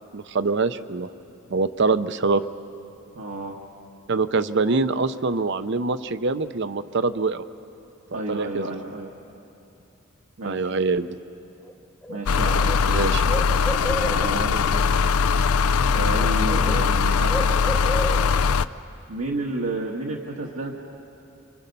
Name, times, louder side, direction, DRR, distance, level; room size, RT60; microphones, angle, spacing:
voice 1, 0.1-1.1 1.5-2.4 4.1-7.4 8.1-8.7 10.4-11.1 12.9-13.4, right 3 dB, 55° right, 12 dB, 0.7 m, -24 dB
voice 2, 3.1-3.6 8.1-9.1 10.4-10.7 12.1-12.8 14.0-14.8 15.8-17.3 19.1-20.7, right 2 dB, 75° right, -2 dB, 1.6 m, -31 dB
Bird, 11.6-11.7 12.0-14.5 15.6-15.8 16.1-18.5, equal, 10° left, 1.1 m, -33 dB
sound 1, 12.3-18.7, left 5 dB, 90° left, 0.5 m, -21 dB
28.0 x 25.5 x 5.4 m, 2.7 s
head